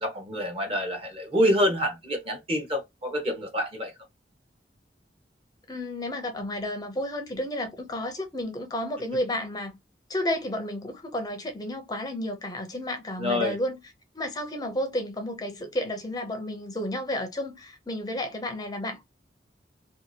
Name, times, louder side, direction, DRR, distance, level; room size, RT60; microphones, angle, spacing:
voice 1, 0.0-3.9 13.2-13.5, equal, 35° right, 1.0 m, -27 dB
voice 2, 5.7-9.8 10.1-13.8 14.1-19.0, left 1 dB, 20° left, 0.5 m, -32 dB
2.7 x 2.3 x 2.7 m
head